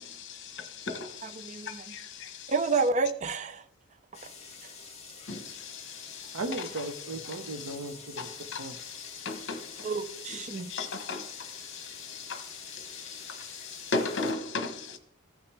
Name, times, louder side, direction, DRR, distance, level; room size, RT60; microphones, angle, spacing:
voice 1, 0.0-2.5 5.3-6.4 7.3-7.7 8.2-15.0, left 3 dB, 55° left, 1.1 m, -37 dB
voice 2, 1.4-1.8 2.5-3.6 9.8-10.7, right 4 dB, 35° right, 0.5 m, -29 dB
sound 1, 4.1-14.3, left 5 dB, 30° left, 2.2 m, -47 dB
voice 3, 6.3-8.3 8.6-8.8, right 2 dB, 85° right, 0.8 m, -36 dB
15.5 x 5.9 x 3.3 m
head